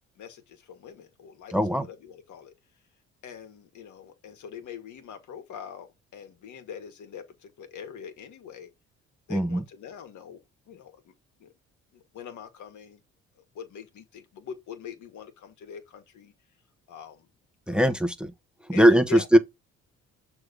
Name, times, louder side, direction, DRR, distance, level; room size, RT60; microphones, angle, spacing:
voice 1, 0.2-2.5 3.2-8.7 9.3-10.4 10.7-11.1 11.4-11.5 11.9-13.0 13.5-16.3 16.9-17.3 17.7-17.9 18.7-19.3, left 7 dB, 65° left, 1.9 m, -43 dB
voice 2, 1.5-1.9 9.3-9.6 17.7-18.3 18.7-19.4, equal, 5° right, 1.0 m, -20 dB
6.7 x 3.6 x 5.0 m
supercardioid pair, 60°, 32 cm